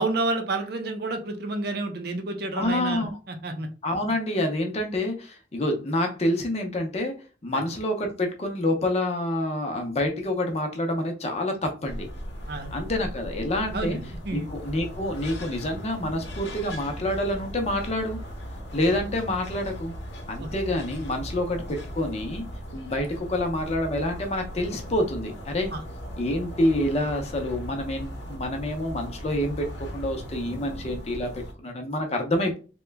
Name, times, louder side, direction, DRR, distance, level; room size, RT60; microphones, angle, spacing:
voice 1, 0.0-3.7 7.5-7.6 12.5-12.8 13.7-14.5 20.4-20.5 25.7-25.8, right 2 dB, 55° right, 5 dB, 0.5 m, -30 dB
voice 2, 2.6-3.2 3.8-7.1 7.4-12.1 12.7-14.0 14.3-18.2 18.7-19.9 20.3-22.4 22.7-25.7 26.2-32.6, left 1 dB, 35° left, 4 dB, 0.6 m, -27 dB
sound 1, 11.9-31.5, equal, 70° left, 0.8 m, -38 dB
2.9 x 2.2 x 3.3 m, 0.35 s
head